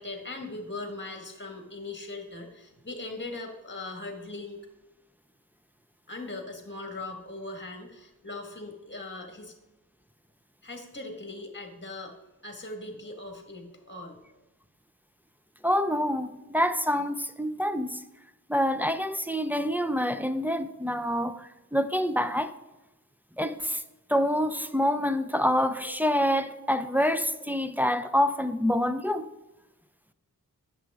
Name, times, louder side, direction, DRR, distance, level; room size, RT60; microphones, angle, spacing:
voice 1, 0.0-4.6 6.1-9.5 10.6-12.1 12.4-14.2, left 2 dB, 30° left, 1.8 m, -39 dB
voice 2, 15.6-18.0 18.5-22.5 23.4-23.8 24.1-29.3, equal, 5° right, 0.5 m, -26 dB
10.5 x 7.4 x 3.6 m
wide cardioid pair, 75°, 37 cm